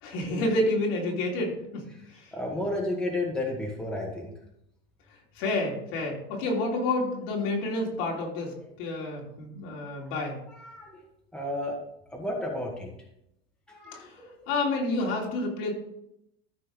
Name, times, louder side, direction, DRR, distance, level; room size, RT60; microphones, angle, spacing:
voice 1, 0.0-2.3 5.3-10.4 13.9-15.7, left 2 dB, 65° left, -1 dB, 3.2 m, -29 dB
voice 2, 2.3-4.3 10.5-11.0 11.3-11.8 12.1-12.9 13.7-14.5, left 1 dB, 5° left, -2 dB, 2.0 m, -32 dB
14.0 x 5.3 x 3.8 m, 0.78 s
supercardioid pair, 135°, 30 cm